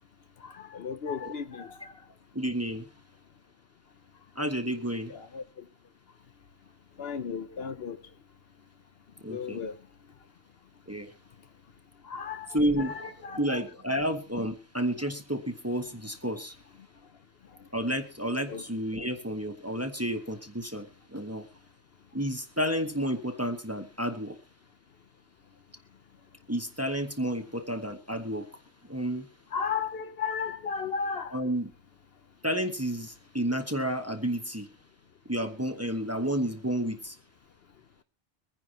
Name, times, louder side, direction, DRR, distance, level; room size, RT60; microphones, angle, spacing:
voice 1, 0.7-1.7 5.1-5.4 7.0-8.0 9.3-9.7 12.1-12.5 12.8-13.6 18.5-18.6 29.5-31.3, left 6 dB, 65° left, 1.0 m, -34 dB
voice 2, 2.3-2.9 4.4-5.1 9.2-9.6 10.9-11.1 12.5-16.5 17.7-21.5 22.1-24.4 26.5-28.5 28.9-29.3 31.3-31.7 32.4-34.7 35.3-37.2, equal, 15° right, 1.0 m, -31 dB
24.0 x 10.0 x 2.9 m
omnidirectional pair, 1.1 m